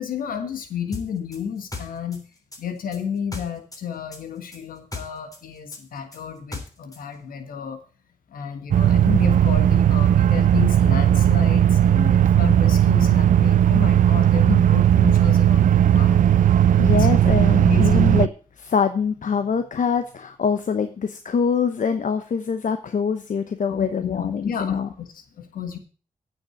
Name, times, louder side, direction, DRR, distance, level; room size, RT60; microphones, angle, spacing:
voice 1, 0.0-2.2 2.6-7.8 8.3-16.4 16.8-17.1 17.6-18.1 23.7-25.8, left 7 dB, 90° left, 7 dB, 1.6 m, -32 dB
sound 1, 0.9-3.8 4.1-7.0, left 3 dB, 25° left, 3.5 m, -37 dB
sound 2, 8.7-18.3, right 10 dB, 70° right, 0.4 m, -17 dB
voice 2, 16.8-18.3 18.6-24.9, left 6 dB, 65° left, 9 dB, 0.9 m, -24 dB
9.0 x 6.5 x 7.7 m, 0.38 s
cardioid pair, 50°, 14 cm